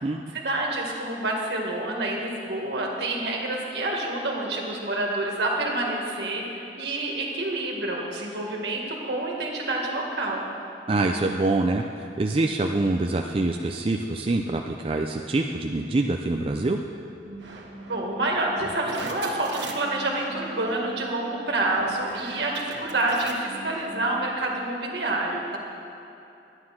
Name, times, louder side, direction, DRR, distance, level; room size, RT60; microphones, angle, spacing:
voice 1, 0.3-10.5 17.8-25.6, right 2 dB, 70° right, -1 dB, 1.9 m, -28 dB
voice 2, 10.9-16.8, right 2 dB, 30° right, 2 dB, 0.4 m, -25 dB
sound 1, 17.2-24.6, right 2 dB, 90° right, 1.4 m, -39 dB
11.5 x 9.8 x 5.8 m, 2.8 s
head